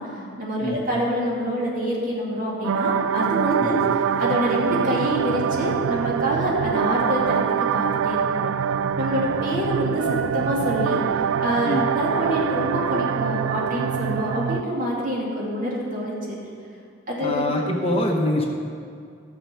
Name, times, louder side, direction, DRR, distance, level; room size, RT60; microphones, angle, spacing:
voice 1, 0.0-3.8 4.2-8.5 9.0-11.0 11.4-16.4 17.1-17.5, equal, 40° right, -5 dB, 2.5 m, -26 dB
sound 1, 2.6-14.6, right 8 dB, 90° right, 0.3 m, -24 dB
voice 2, 17.2-18.5, left 1 dB, 30° left, 1 dB, 0.9 m, -24 dB
14.0 x 6.7 x 5.7 m, 2.3 s
head